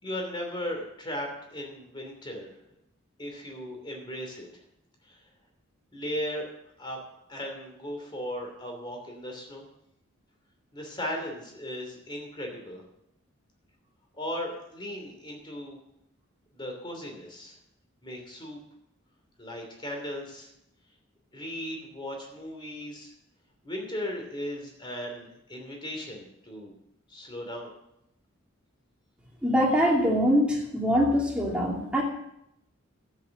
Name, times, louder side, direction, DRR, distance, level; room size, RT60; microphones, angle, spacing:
voice 1, 0.0-2.5 3.2-4.5 5.0-5.2 5.9-6.5 6.8-7.0 7.3-9.6 10.7-12.8 14.2-15.8 16.5-17.5 18.0-18.6 19.4-20.5 21.3-23.1 23.6-26.7 27.1-27.7, equal, 20° left, 2 dB, 2.8 m, -37 dB
voice 2, 29.4-32.0, equal, 5° right, -2 dB, 2.5 m, -23 dB
12.0 x 8.6 x 6.5 m, 0.80 s
head